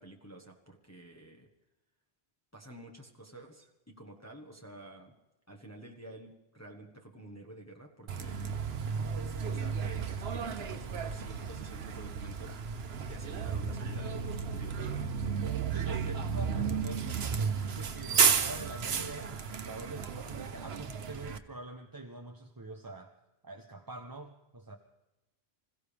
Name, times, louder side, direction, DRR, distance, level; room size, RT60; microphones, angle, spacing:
voice 1, 0.0-1.5 2.5-5.2 5.5-8.8 9.4-12.7 13.1-15.2, right 1 dB, 15° left, 0 dB, 1.3 m, -50 dB
Bus, 8.1-21.4, right 6 dB, 75° right, 1.1 m, -33 dB
voice 2, 15.7-23.1 23.4-24.8, right 2 dB, 20° right, 4 dB, 0.8 m, -45 dB
26.5 x 15.5 x 3.4 m, 1.0 s
omnidirectional pair, 1.1 m